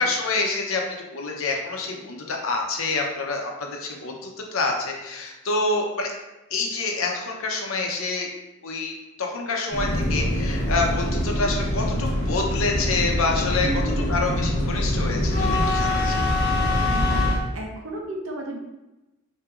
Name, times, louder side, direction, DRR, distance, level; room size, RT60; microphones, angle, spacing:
voice 1, 0.0-6.1 6.5-8.3 8.6-8.9 9.2-13.7 14.1-16.3, left 3 dB, 90° left, 1 dB, 0.8 m, -27 dB
sound 1, 9.7-17.4, left 1 dB, 55° left, 0.8 m, -24 dB
voice 2, 13.5-14.1 16.9-17.2 17.5-18.6, right 1 dB, 75° right, 0 dB, 0.8 m, -33 dB
5.8 x 2.8 x 2.5 m, 1.0 s
head